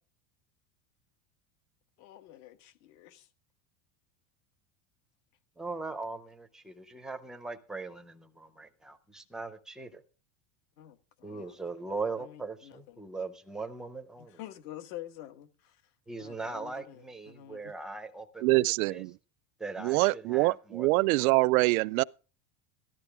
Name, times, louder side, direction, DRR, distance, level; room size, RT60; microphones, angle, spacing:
voice 1, 2.0-3.3 10.8-11.5 12.2-12.8 14.2-15.5 16.2-17.7, left 13 dB, 60° left, 1.4 m, -47 dB
voice 2, 5.6-10.0 11.2-14.4 16.1-19.0 19.6-21.3, right 3 dB, ahead, 0.5 m, -40 dB
voice 3, 18.4-19.2 19.8-22.0, right 22 dB, 90° right, 0.5 m, -25 dB
13.5 x 11.5 x 3.5 m
cardioid pair, 165°, 41 cm